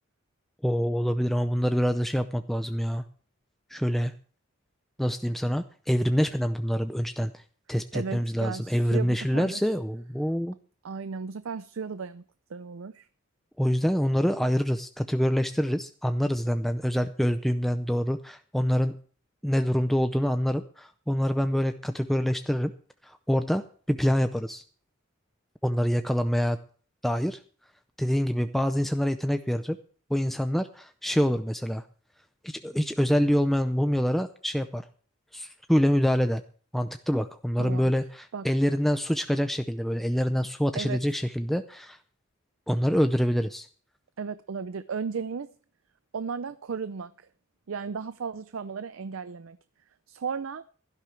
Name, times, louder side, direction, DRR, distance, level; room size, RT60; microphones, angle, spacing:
voice 1, 0.6-3.0 3.7-4.1 5.0-7.4 7.7-10.5 13.6-19.0 19.4-22.7 23.0-24.6 25.6-26.6 27.0-27.4 28.0-29.8 30.1-31.8 32.4-34.9 35.3-36.4 36.7-42.0 42.7-43.7, equal, ahead, 0.5 m, -26 dB
voice 2, 7.9-9.6 10.8-12.2 12.5-13.1 37.6-37.9 38.3-38.5 40.7-41.0 44.2-45.5 46.1-47.1 47.7-49.6 50.1-50.7, right 5 dB, 75° right, 0.5 m, -35 dB
16.0 x 12.0 x 3.3 m
head